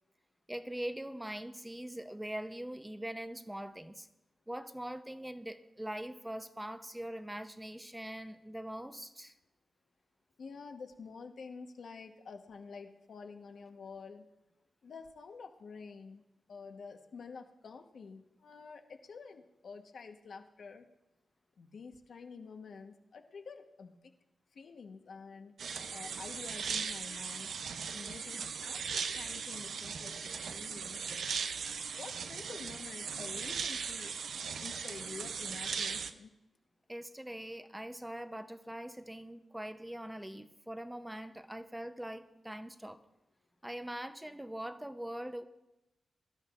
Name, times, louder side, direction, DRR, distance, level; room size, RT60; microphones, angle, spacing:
voice 1, 0.5-4.1 4.5-9.3 36.9-43.0 43.6-45.4, right 1 dB, 10° right, 9 dB, 0.8 m, -42 dB
voice 2, 10.4-14.3 14.8-16.2 16.5-20.9 21.6-24.0 24.5-25.5 25.9-27.5 27.9-31.3 31.9-34.1 34.4-36.4, left 5 dB, 70° left, 4 dB, 1.3 m, -49 dB
sound 1, 25.6-36.1, right 6 dB, 75° right, 0.6 m, -38 dB
23.5 x 12.5 x 2.6 m, 0.96 s
cardioid pair, 80°, 0 cm